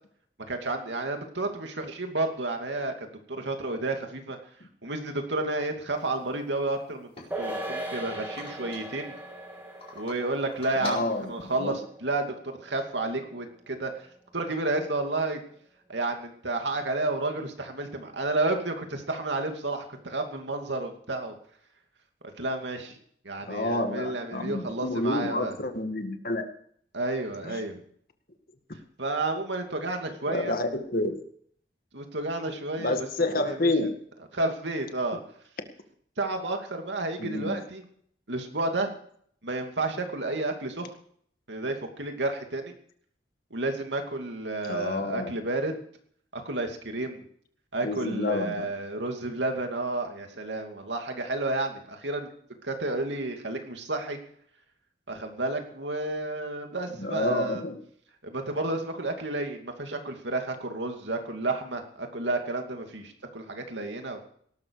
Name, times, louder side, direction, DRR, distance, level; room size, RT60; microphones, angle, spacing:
voice 1, 0.5-4.4 4.8-7.1 7.4-9.1 9.9-13.9 14.3-15.4 15.9-21.4 22.4-23.0 23.2-25.6 26.9-27.8 29.0-30.5 31.9-33.0 33.4-33.7 34.3-35.2 36.2-37.8 38.3-38.9 39.4-40.9 41.5-42.7 43.5-45.8 46.3-47.2 47.7-52.3 52.6-54.2 55.1-57.6 58.2-64.2, right 2 dB, 90° right, 4 dB, 2.7 m, -31 dB
sound 1, 5.9-6.0 6.3-6.4 6.8-7.9 8.3-9.3 9.8-10.2 10.5-11.7, left 2 dB, 35° left, 4.7 m, -44 dB
sound 2, 7.3-14.0 14.3-14.4, right 1 dB, 10° right, 3.2 m, -39 dB
voice 2, 10.8-11.8 23.4-26.5 27.4-27.6 30.3-31.2 32.8-33.9 37.2-37.6 44.7-45.3 47.8-48.7 57.0-57.8, left 2 dB, 55° left, 6 dB, 1.9 m, -29 dB
18.0 x 12.5 x 4.9 m, 0.63 s
head